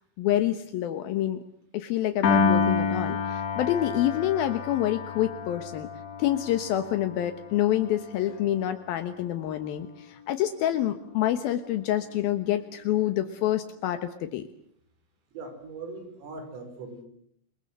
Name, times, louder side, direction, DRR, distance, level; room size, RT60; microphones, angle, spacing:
voice 1, 0.2-1.4 1.7-5.9 6.2-14.5, left 12 dB, 75° left, 9 dB, 2.2 m, -27 dB
Piano, 2.2-8.6, left 5 dB, 60° left, 5.7 m, -29 dB
voice 2, 15.3-17.0, right 3 dB, 75° right, 8 dB, 7.7 m, -40 dB
27.5 x 23.0 x 7.8 m, 0.67 s
omnidirectional pair, 6.0 m